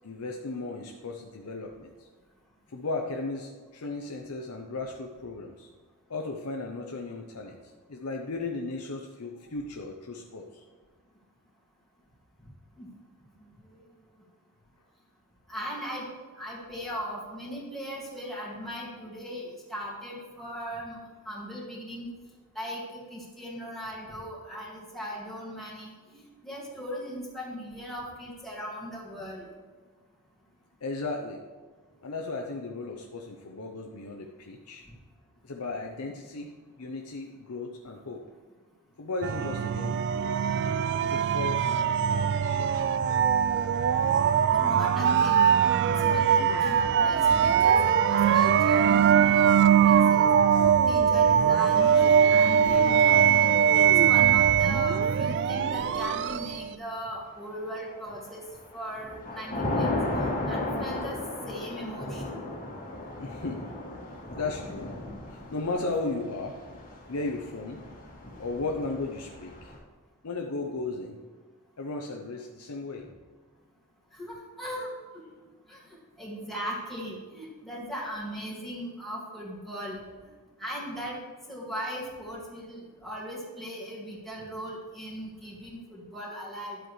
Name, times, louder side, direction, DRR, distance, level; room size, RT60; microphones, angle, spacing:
voice 1, 0.0-2.1 2.7-5.7 6.1-10.6 30.8-31.4 32.0-34.8 35.4-36.5 36.8-38.2 39.0-40.3 41.0-43.2 62.6-62.8 63.2-66.6 67.1-67.8 68.4-69.7 70.2-71.2 71.8-73.1, left 3 dB, 75° left, 2 dB, 0.7 m, -36 dB
voice 2, 13.4-13.8 15.5-16.1 16.4-22.1 22.5-29.4 44.5-45.6 45.9-50.3 50.9-53.2 53.7-58.4 58.7-59.9 60.5-61.2 61.5-62.4 74.1-74.9 75.7-80.3 80.6-81.2 81.5-86.8, equal, ahead, -6 dB, 2.2 m, -38 dB
sound 1, 39.2-56.7, right 8 dB, 50° right, 0.3 m, -22 dB
Thunder / Rain, 57.7-58.2 58.6-69.8, left 2 dB, 35° left, 2.0 m, -35 dB
11.5 x 7.8 x 3.2 m, 1.5 s
head